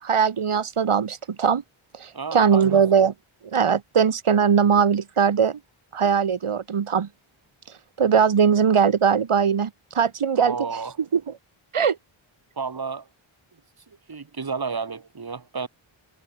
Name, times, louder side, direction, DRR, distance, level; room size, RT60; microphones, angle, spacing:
voice 1, 0.0-1.6 1.9-3.1 3.4-5.6 5.9-7.1 8.0-10.6 11.1-11.2 11.7-12.0, right 7 dB, 80° right, 7.2 m, -20 dB
voice 2, 2.1-2.8 10.4-11.0 12.6-13.1 13.9-15.7, right 5 dB, 45° right, 6.9 m, -31 dB
wide cardioid pair, 140°, 50 cm